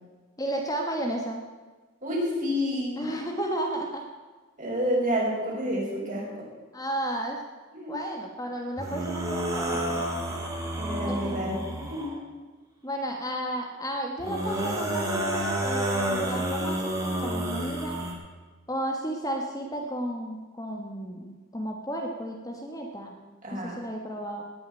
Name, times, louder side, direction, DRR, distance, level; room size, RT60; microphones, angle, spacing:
voice 1, 0.4-1.4 3.0-4.0 6.7-7.4 7.9-10.0 11.1-11.4 12.8-18.0 18.7-23.1 23.5-24.4, right 1 dB, 15° left, 2 dB, 1.4 m, -33 dB
voice 2, 2.0-3.2 4.6-6.5 7.7-8.0 10.8-12.2 23.4-23.8, equal, 35° right, -4 dB, 5.6 m, -29 dB
sound 1, 8.8-12.2 14.2-18.1, right 1 dB, 15° right, 2.6 m, -30 dB
19.0 x 6.9 x 9.0 m, 1.3 s
head